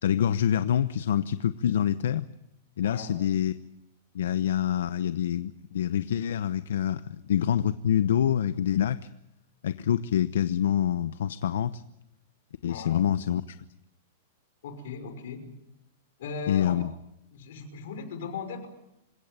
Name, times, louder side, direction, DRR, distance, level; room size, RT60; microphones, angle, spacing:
voice 1, 0.0-2.2 2.8-3.5 4.1-9.0 9.6-11.8 12.6-13.5 16.5-16.9, left 9 dB, 80° left, 13 dB, 0.9 m, -26 dB
voice 2, 2.8-3.1 12.7-13.1 14.6-15.5 16.2-16.8 17.3-18.7, left 5 dB, 60° left, 8 dB, 5.6 m, -38 dB
27.5 x 17.0 x 9.1 m, 0.82 s
supercardioid pair, 175°, 0 cm